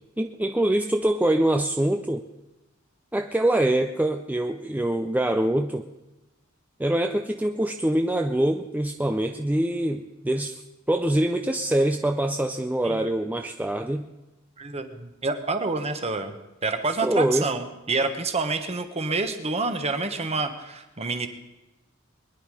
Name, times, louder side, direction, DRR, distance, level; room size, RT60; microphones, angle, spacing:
voice 1, 0.2-2.3 3.1-5.9 6.8-10.6 10.9-14.1 17.0-17.5, right 1 dB, 10° right, 5 dB, 0.5 m, -24 dB
voice 2, 14.6-16.3 16.6-21.3, right 3 dB, 30° right, 8 dB, 1.3 m, -28 dB
22.0 x 10.5 x 4.9 m, 1.0 s
head